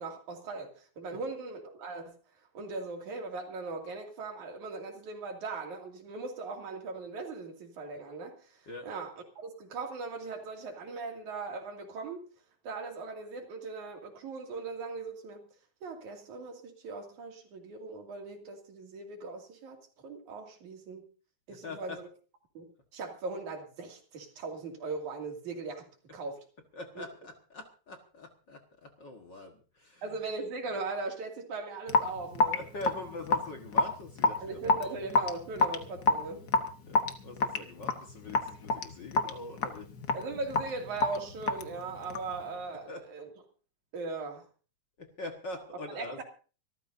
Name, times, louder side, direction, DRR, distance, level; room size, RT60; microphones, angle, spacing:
voice 1, 0.0-2.2 2.5-12.2 12.6-15.5 15.8-19.8 20.0-21.1 21.5-22.1 22.6-26.4 27.0-27.1 30.0-32.6 34.4-36.6 40.1-43.3 43.9-44.5 45.9-46.2, right 3 dB, 75° right, 2 dB, 3.9 m, -39 dB
voice 2, 21.5-22.0 26.7-30.0 32.5-35.0 36.8-39.9 42.9-43.0 45.0-46.2, left 2 dB, 45° left, 3 dB, 1.8 m, -43 dB
Raindrop / Drip, 31.9-42.4, left 3 dB, 60° left, 1.0 m, -29 dB
25.5 x 14.0 x 2.7 m, 0.37 s
omnidirectional pair, 3.5 m